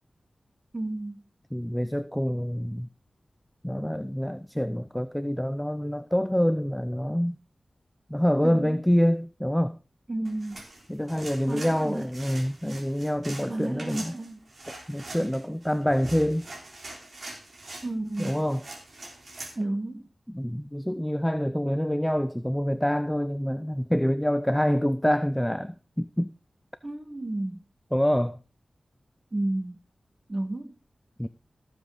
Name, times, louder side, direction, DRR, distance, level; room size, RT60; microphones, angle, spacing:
voice 1, 0.7-1.2 8.4-8.8 10.1-10.7 11.5-12.1 13.5-14.5 17.8-18.4 19.5-20.1 26.8-27.6 29.3-29.8 30.3-30.7, right 2 dB, 30° right, 1.6 m, -32 dB
voice 2, 1.5-2.9 3.6-7.3 8.1-9.8 10.9-14.1 14.9-16.5 18.2-18.6 20.3-26.3 27.9-28.4 31.2-31.3, equal, 5° left, 0.5 m, -26 dB
sound 1, 10.2-19.6, right 2 dB, 55° right, 3.7 m, -43 dB
15.5 x 7.4 x 3.9 m
wide cardioid pair, 90°, 0 cm